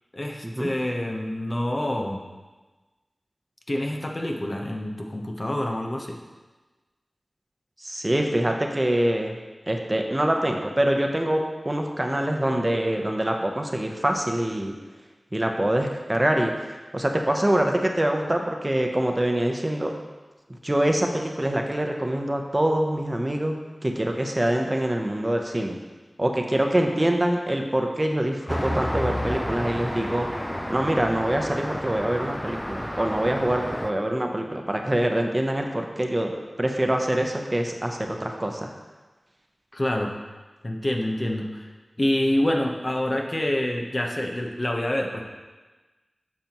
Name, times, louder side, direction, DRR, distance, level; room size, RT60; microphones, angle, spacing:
voice 1, 0.1-2.2 3.7-6.2 39.7-40.1 40.6-41.7 42.0-45.2, left 1 dB, 40° left, 1 dB, 0.9 m, -27 dB
voice 2, 7.8-9.4 9.7-14.7 15.3-16.5 16.9-19.9 20.6-23.5 23.8-25.8 26.2-30.3 30.7-36.3 36.6-38.7, right 1 dB, 30° right, 3 dB, 0.8 m, -24 dB
Traffic noise roadway noise, 28.5-33.9, equal, 10° left, 0.4 m, -30 dB
8.9 x 6.0 x 3.0 m, 1.2 s
wide cardioid pair, 45°, 0 cm